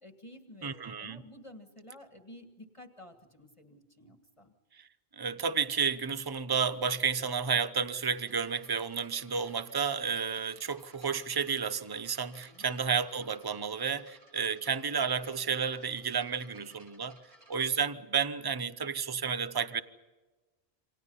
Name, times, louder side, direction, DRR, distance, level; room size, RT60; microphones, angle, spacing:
voice 1, 0.0-4.5 12.5-12.8, left 1 dB, 30° left, 1.8 m, -52 dB
voice 2, 0.6-1.2 5.2-17.2 17.5-19.8, right 6 dB, 25° right, 0.9 m, -31 dB
sound 1, 8.1-17.7, right 1 dB, 70° right, 6.5 m, -60 dB
28.5 x 26.0 x 5.6 m
omnidirectional pair, 1.1 m